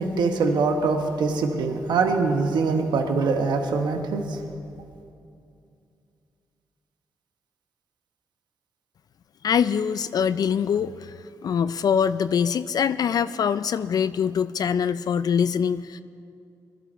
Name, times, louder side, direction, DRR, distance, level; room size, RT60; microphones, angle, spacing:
voice 1, 0.0-4.4, right 4 dB, 80° right, 5 dB, 1.1 m, -23 dB
voice 2, 9.4-16.0, left 7 dB, 60° left, 13 dB, 0.4 m, -24 dB
20.5 x 12.5 x 4.3 m, 2.5 s
cardioid pair, 80°, 7 cm